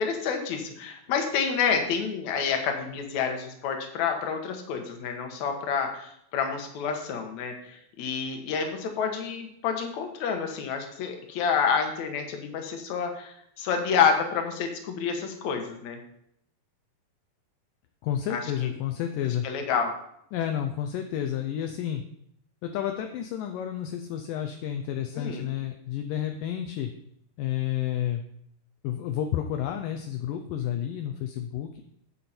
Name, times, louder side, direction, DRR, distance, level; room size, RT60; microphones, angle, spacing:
voice 1, 0.0-16.0 18.3-18.4 19.4-19.9 25.2-25.5, left 6 dB, 60° left, 4 dB, 2.4 m, -28 dB
voice 2, 18.0-19.5 20.3-22.0 22.6-26.9 27.4-28.2 28.8-31.8, left 10 dB, 75° left, 5 dB, 2.2 m, -30 dB
9.2 x 8.4 x 4.4 m, 0.72 s
omnidirectional pair, 4.1 m